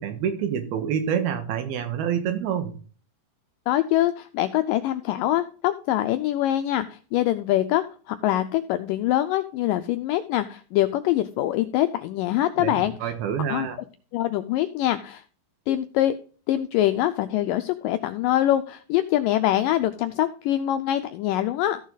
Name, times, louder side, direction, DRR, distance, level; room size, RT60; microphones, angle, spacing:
voice 1, 0.0-2.7 12.6-13.8, right 8 dB, 80° right, 7 dB, 3.3 m, -27 dB
voice 2, 3.7-13.1 13.5-13.7 14.1-15.2 15.7-16.1 16.5-21.8, left 13 dB, 85° left, 9 dB, 1.9 m, -24 dB
14.0 x 6.3 x 4.0 m, 0.39 s
omnidirectional pair, 4.4 m